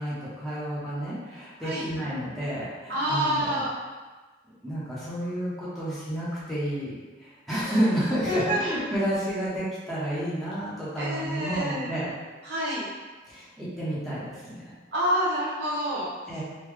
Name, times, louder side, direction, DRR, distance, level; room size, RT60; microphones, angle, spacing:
voice 1, 0.0-3.6 4.6-6.9 7.2-12.1 13.3-14.7 16.3-16.4, equal, ahead, -11 dB, 0.7 m, -30 dB
voice 2, 2.9-3.8 8.3-8.6 11.0-12.0 12.4-12.9 14.9-16.1, equal, 70° right, -7 dB, 1.0 m, -27 dB
3.7 x 2.1 x 3.1 m, 1.3 s
head